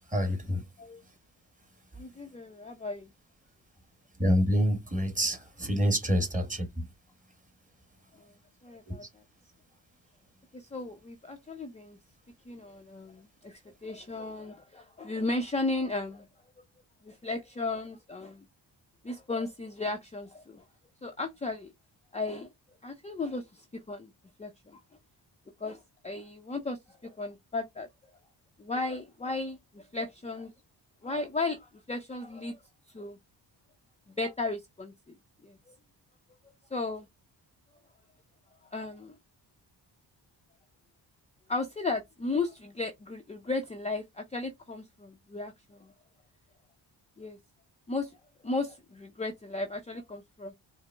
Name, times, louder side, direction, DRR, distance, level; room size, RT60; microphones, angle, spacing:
voice 1, 0.1-0.6 4.2-6.8 8.9-9.0, equal, 20° right, 1.2 m, -27 dB
voice 2, 2.0-3.1 8.1-8.3 8.6-9.2 10.5-12.0 12.5-16.3 17.0-18.5 19.0-20.6 21.0-21.7 22.1-22.5 22.8-24.1 24.4-24.8 25.6-27.9 28.6-30.5 31.0-32.6 32.9-33.2 34.2-35.2 35.4-35.8 36.7-37.1 38.7-39.2 41.5-45.9 47.2-47.4 47.9-48.1 48.4-50.5, left 3 dB, 15° left, 0.5 m, -35 dB
4.8 x 2.0 x 3.3 m
cardioid pair, 105°, 43 cm